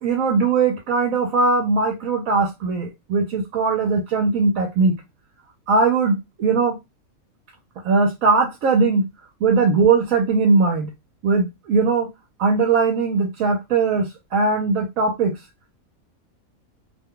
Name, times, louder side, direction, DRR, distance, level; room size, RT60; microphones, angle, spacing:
voice 1, 0.0-4.9 5.7-6.8 7.8-9.1 9.4-10.9 11.2-12.1 12.4-15.4, right 4 dB, 75° right, 1 dB, 1.1 m, -20 dB
2.7 x 2.2 x 3.7 m, 0.22 s
omnidirectional pair, 1.5 m